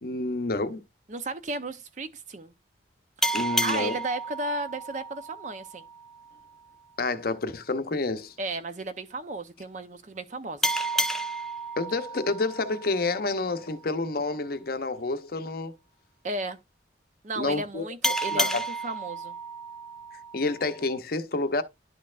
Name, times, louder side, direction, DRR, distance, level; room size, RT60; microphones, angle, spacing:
voice 1, 0.0-0.8 3.3-4.0 7.0-8.3 11.8-15.7 17.4-17.9 18.3-18.5 20.3-21.6, left 3 dB, 50° left, 0.7 m, -29 dB
voice 2, 1.1-2.5 3.6-5.9 8.4-10.8 16.2-16.6 17.2-19.3, right 2 dB, 40° right, 0.6 m, -34 dB
sound 1, 3.2-6.4 10.6-13.9 18.0-21.0, right 1 dB, ahead, 0.4 m, -31 dB
11.5 x 4.3 x 2.4 m
head